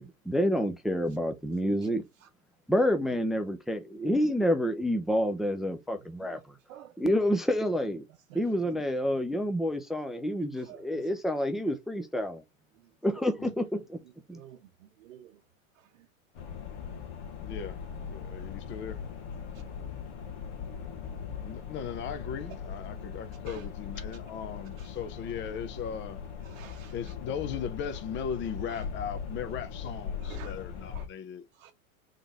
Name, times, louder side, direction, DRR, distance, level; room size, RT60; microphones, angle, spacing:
voice 1, 0.0-2.0 2.7-6.4 7.0-8.0 8.3-12.4 13.0-14.0 14.3-14.4, equal, ahead, 0.4 m, -28 dB
voice 2, 10.7-11.1 14.3-14.6 15.0-15.4 23.5-23.6 24.8-24.9 26.4-27.1 28.7-28.8 30.2-30.5 30.9-31.1 31.6-31.7, right 11 dB, 70° right, 0.8 m, -49 dB
sound 1, 16.3-31.1, left 7 dB, 60° left, 1.7 m, -40 dB
voice 3, 17.4-17.8 18.1-19.0 21.4-26.2 26.9-31.4, left 7 dB, 30° left, 0.8 m, -37 dB
3.8 x 3.7 x 3.2 m
hypercardioid pair, 115°, 41 cm